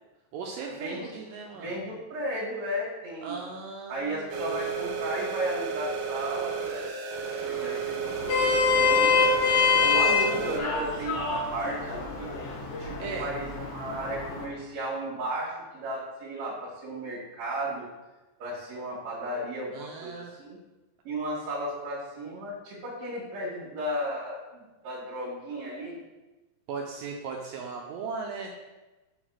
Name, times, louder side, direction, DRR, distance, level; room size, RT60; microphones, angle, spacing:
voice 1, 0.3-1.8 3.2-4.4 13.0-13.3 19.7-20.3 26.7-28.5, right 5 dB, 85° right, 0 dB, 2.0 m, -37 dB
voice 2, 1.5-3.4 3.9-6.6 7.4-8.0 8.4-9.3 9.8-12.3 12.8-12.9 13.2-17.9 18.4-20.6 21.0-26.0, right 1 dB, 50° right, -7 dB, 2.6 m, -34 dB
sound 1, 4.3-10.6, right 6 dB, 70° right, 2.6 m, -33 dB
Vehicle horn car horn honking, 8.0-14.4, left 5 dB, 70° left, 2.7 m, -26 dB
7.0 x 4.0 x 6.2 m, 1.1 s
omnidirectional pair, 4.6 m